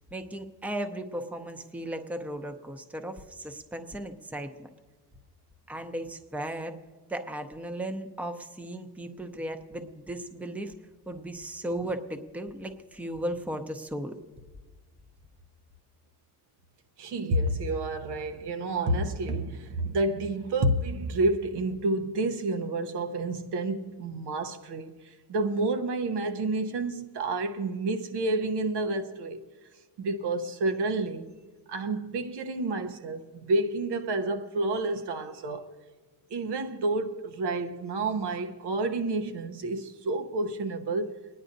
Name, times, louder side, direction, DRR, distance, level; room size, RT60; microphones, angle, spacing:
voice 1, 0.1-4.7 5.7-6.8 7.1-10.7 11.1-14.1, right 1 dB, 5° right, 0.6 m, -36 dB
voice 2, 17.0-29.4 30.0-31.3 31.7-35.7 36.3-41.2, right 2 dB, 80° right, 1.0 m, -29 dB
28.5 x 10.0 x 2.7 m
cardioid pair, 120°, 40 cm